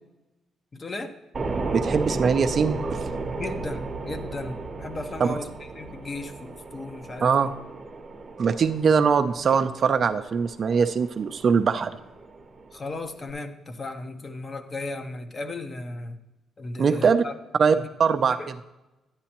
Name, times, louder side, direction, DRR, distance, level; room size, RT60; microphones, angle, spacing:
voice 1, 0.7-1.1 3.4-7.5 12.7-16.2 16.6-17.3 17.7-17.9 18.3-18.5, left 2 dB, 30° left, 8 dB, 0.8 m, -36 dB
ab distance atmos, 1.3-13.3, right 3 dB, 30° right, 0.8 m, -34 dB
voice 2, 1.7-3.0 5.2-5.4 7.2-7.5 8.4-12.0 16.8-17.2 17.6-18.4, right 6 dB, 50° right, 10 dB, 0.4 m, -22 dB
10.0 x 9.6 x 2.9 m, 1.0 s
cardioid pair, 90°, 0 cm